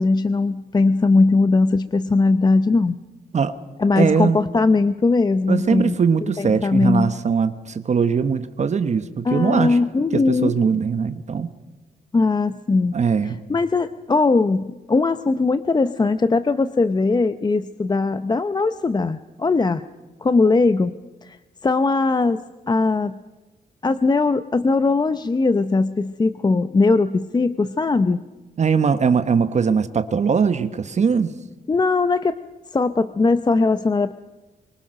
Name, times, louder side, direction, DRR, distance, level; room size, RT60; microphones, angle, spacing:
voice 1, 0.0-3.0 3.8-5.9 6.4-7.1 9.2-10.5 12.1-13.0 13.5-19.8 20.2-20.9 21.2-21.4 21.6-22.4 22.7-23.2 23.8-28.2 31.7-32.4 32.7-34.1, left 3 dB, 25° left, 12 dB, 0.7 m, -19 dB
voice 2, 3.9-4.5 5.5-9.8 10.1-11.5 12.9-13.4 28.6-31.3, right 6 dB, 45° right, 11 dB, 1.2 m, -21 dB
24.5 x 24.0 x 6.5 m, 1.1 s
cardioid pair, 115°, 16 cm